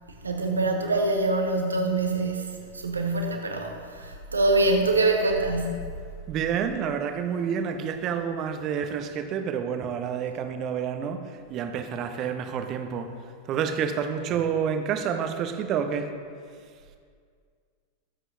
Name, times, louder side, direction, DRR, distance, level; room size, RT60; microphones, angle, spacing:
voice 1, 0.2-5.9, right 2 dB, 75° right, 2 dB, 1.4 m, -25 dB
voice 2, 6.3-13.2 13.5-16.1, right 7 dB, 35° right, 7 dB, 0.9 m, -29 dB
20.5 x 7.8 x 2.7 m, 2.1 s
figure-of-eight pair, 90°, 0 cm